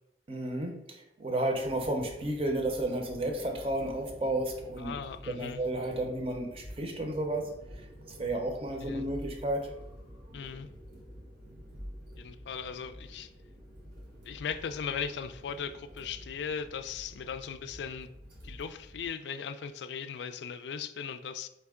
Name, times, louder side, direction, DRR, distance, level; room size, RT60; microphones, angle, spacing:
voice 1, 0.3-4.9 5.3-7.5 7.8-9.7, right 1 dB, 30° right, 3 dB, 0.6 m, -32 dB
sound 1, 1.4-19.1, equal, 75° right, 1.3 m, -49 dB
voice 2, 4.8-5.6 8.8-9.1 10.3-10.7 12.2-13.3 14.2-18.1 18.4-21.5, left 7 dB, 80° left, 10 dB, 0.3 m, -38 dB
4.4 x 3.3 x 3.6 m, 0.84 s
head